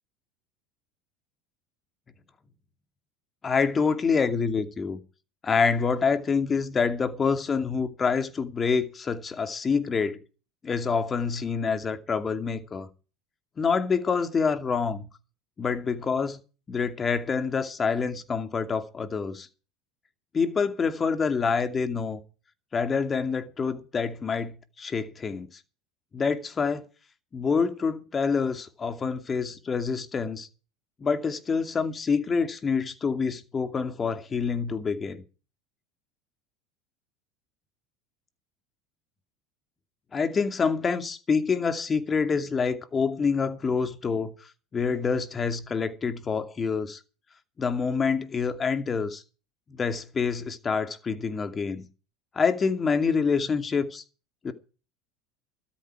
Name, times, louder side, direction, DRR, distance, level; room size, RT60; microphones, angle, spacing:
voice 1, 3.4-5.0 5.4-10.2 10.6-12.9 13.6-15.1 15.6-16.4 16.7-19.5 20.3-22.2 22.7-25.5 26.1-26.9 27.3-30.5 31.0-35.2 40.1-44.3 44.7-47.0 47.6-49.2 49.7-51.9 52.3-54.0 54.4-54.5, left 5 dB, 30° left, 2.5 m, -26 dB
14.0 x 13.0 x 4.8 m
hypercardioid pair, 80°, 0 cm